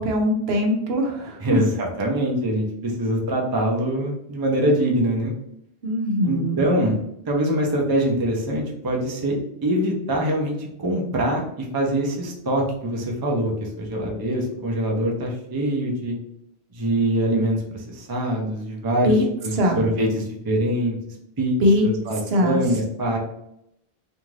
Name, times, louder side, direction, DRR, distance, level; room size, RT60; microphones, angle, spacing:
voice 1, 0.0-1.6 5.8-6.6 19.0-19.3 19.6-19.8 21.6-21.9 22.3-22.6, equal, 75° right, 2 dB, 0.8 m, -21 dB
voice 2, 1.4-5.3 6.2-6.9 7.3-16.1 16.7-19.1 19.4-21.0 21.4-21.6 21.8-23.2, right 1 dB, 30° right, 0 dB, 0.4 m, -24 dB
2.6 x 2.3 x 3.1 m, 0.79 s
omnidirectional pair, 1.1 m